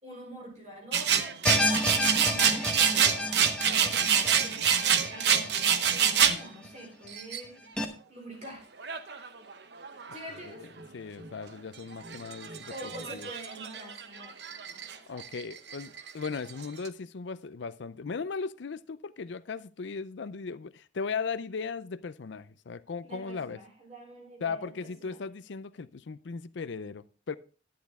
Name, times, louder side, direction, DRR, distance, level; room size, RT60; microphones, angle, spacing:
voice 1, 0.0-7.5 8.1-8.6 10.1-10.6 12.7-14.3 14.6-15.2 23.0-25.2, equal, 35° right, 4.4 m, -46 dB
sound 1, 0.9-6.4 7.1-7.4 8.8-9.5 9.8-10.3 10.8-10.9 11.2-11.3 11.9-14.9 15.2-16.9, right 8 dB, 60° right, 0.8 m, -27 dB
sound 2, 1.5-6.7 7.0-7.1 7.8-7.9, left 1 dB, 5° left, 1.1 m, -31 dB
voice 2, 10.4-13.3 15.1-23.6 24.4-27.4, left 5 dB, 65° left, 0.5 m, -37 dB
10.5 x 10.5 x 3.6 m
head